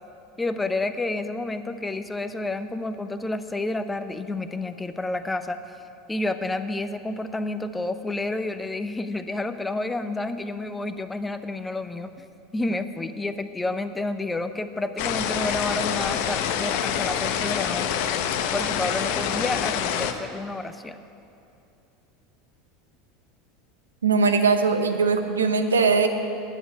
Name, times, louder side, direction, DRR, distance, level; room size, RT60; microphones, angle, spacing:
voice 1, 0.4-5.6 6.1-12.3 12.5-18.0 18.5-21.0, left 2 dB, 15° left, 10 dB, 0.7 m, -30 dB
sound 1, 15.0-20.1, left 8 dB, 65° left, 0.7 m, -26 dB
voice 2, 24.0-26.1, right 4 dB, 85° right, 7 dB, 0.8 m, -20 dB
10.0 x 7.9 x 8.6 m, 2.7 s
hypercardioid pair, 85°, 0 cm